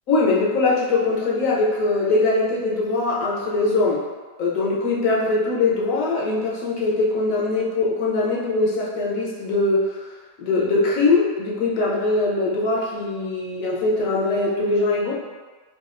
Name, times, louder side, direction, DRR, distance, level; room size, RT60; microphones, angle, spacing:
voice 1, 0.1-4.1 4.4-9.9 10.4-15.1, left 3 dB, 65° left, -4 dB, 0.9 m, -21 dB
4.0 x 2.3 x 2.4 m, 1.3 s
omnidirectional pair, 1.7 m